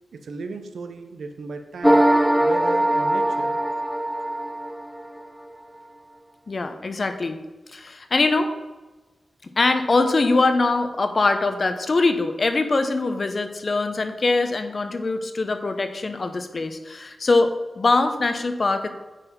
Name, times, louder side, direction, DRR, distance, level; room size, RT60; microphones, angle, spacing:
voice 1, 0.1-2.0 2.4-3.6, right 4 dB, 85° right, 7 dB, 0.7 m, -36 dB
sound 1, 1.8-5.2, right 1 dB, 5° right, 0.4 m, -21 dB
voice 2, 6.5-7.4 7.7-8.5 9.6-18.9, left 3 dB, 50° left, 8 dB, 0.7 m, -22 dB
9.0 x 4.1 x 4.3 m, 1.2 s
cardioid pair, 60°, 0 cm